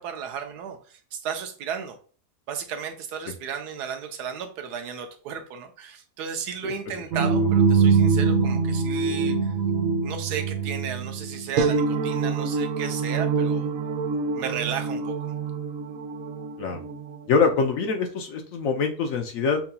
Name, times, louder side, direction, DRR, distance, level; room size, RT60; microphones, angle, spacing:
voice 1, 0.0-2.0 2.5-9.5 10.0-13.7 14.3-15.3, right 7 dB, 80° right, 6 dB, 1.2 m, -34 dB
sound 1, 7.1-17.0, right 5 dB, 65° right, 0.9 m, -24 dB
voice 2, 17.3-19.6, left 5 dB, 65° left, 4 dB, 1.0 m, -24 dB
5.7 x 2.7 x 2.2 m, 0.42 s
omnidirectional pair, 1.7 m